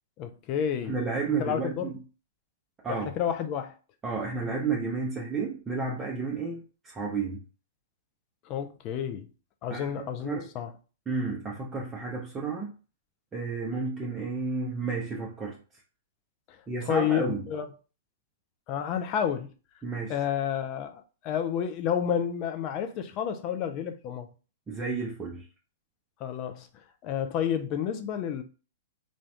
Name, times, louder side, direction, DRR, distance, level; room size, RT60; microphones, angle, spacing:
voice 1, 0.2-1.0 1.4-1.9 2.9-3.7 8.5-9.3 9.6-10.7 16.5-17.7 18.7-19.5 20.1-24.3 26.2-26.7 27.0-28.4, left 9 dB, 40° left, 0.5 m, -30 dB
voice 2, 0.9-2.0 2.8-3.1 4.0-7.4 9.7-9.9 10.2-10.5 11.1-12.7 13.3-15.6 16.7-17.4 19.8-20.2 24.7-25.4, right 4 dB, 20° right, 0.6 m, -31 dB
2.5 x 2.4 x 3.3 m
hypercardioid pair, 115°, 0 cm